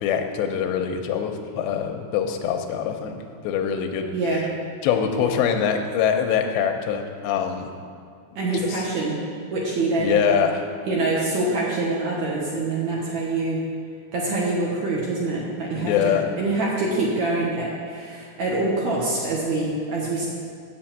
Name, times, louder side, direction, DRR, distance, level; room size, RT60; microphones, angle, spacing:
voice 1, 0.0-3.2 3.4-4.1 4.8-7.7 10.0-10.6 15.8-16.2, left 8 dB, 90° left, 5 dB, 3.0 m, -23 dB
voice 2, 4.1-4.6 8.4-10.3 10.8-13.7 14.1-20.3, right 2 dB, 60° right, -4 dB, 2.0 m, -25 dB
8.2 x 8.1 x 7.4 m, 2.2 s
omnidirectional pair, 4.9 m